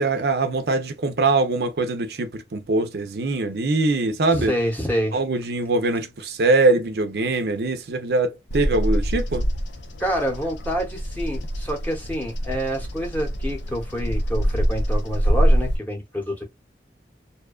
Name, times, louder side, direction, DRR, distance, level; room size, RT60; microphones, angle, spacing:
voice 1, 0.0-4.5 5.1-9.5, right 3 dB, 60° right, 0.5 m, -22 dB
voice 2, 4.3-5.2 10.0-16.4, equal, 10° left, 0.8 m, -27 dB
Bird vocalization bird call bird song, 8.5-15.8, equal, 90° left, 0.6 m, -24 dB
2.7 x 2.2 x 2.2 m
head